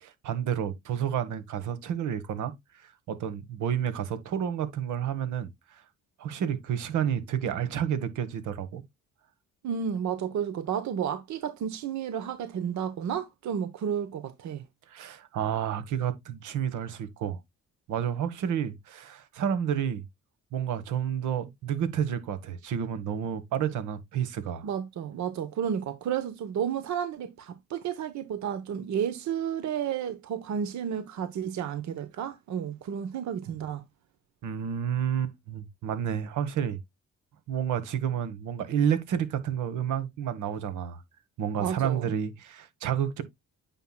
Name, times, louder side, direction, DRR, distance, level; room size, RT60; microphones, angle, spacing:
voice 1, 0.0-2.5 2.8-5.5 6.2-8.8 14.9-17.4 17.9-20.0 20.5-24.7 34.4-36.8 37.5-41.0 41.4-43.2, right 9 dB, 85° right, 1.3 m, -30 dB
voice 2, 9.6-14.6 24.6-33.8 41.6-42.1, right 8 dB, 65° right, 0.9 m, -32 dB
9.1 x 5.8 x 2.2 m
cardioid pair, 90°, 30 cm